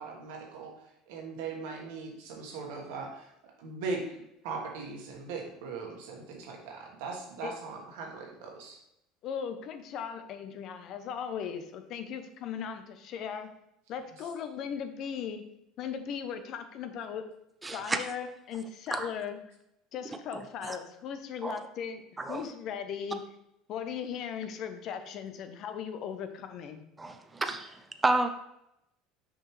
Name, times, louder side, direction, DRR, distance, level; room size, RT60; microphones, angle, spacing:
voice 1, 0.0-8.8, right 4 dB, 75° right, 1 dB, 1.5 m, -40 dB
voice 2, 9.2-13.5 13.9-15.4 15.8-17.2 17.7-19.4 19.9-22.0 22.3-23.2 23.7-26.8, left 7 dB, 55° left, 8 dB, 0.7 m, -38 dB
voice 3, 17.6-18.0 18.9-19.1 20.6-20.8 21.4-21.5 22.3-22.4 27.0-27.7 28.0-28.3, right 2 dB, 20° right, 7 dB, 0.6 m, -29 dB
6.1 x 4.9 x 3.3 m, 0.82 s
hypercardioid pair, 85°, 0 cm